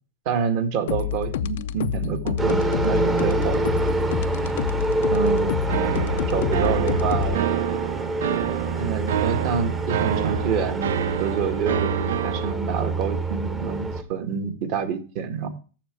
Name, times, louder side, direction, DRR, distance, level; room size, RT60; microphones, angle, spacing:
voice 1, 0.3-3.7 5.1-5.6 6.3-7.4 8.8-10.9 11.2-15.5, right 7 dB, 50° right, 7 dB, 1.7 m, -27 dB
sound 1, 0.9-7.3, left 10 dB, 70° left, 0.5 m, -27 dB
sound 2, 2.4-14.0, right 3 dB, 15° right, 0.9 m, -26 dB
sound 3, 5.7-12.5, right 9 dB, 80° right, 0.5 m, -28 dB
7.1 x 6.8 x 7.4 m, 0.38 s
supercardioid pair, 140°, 0 cm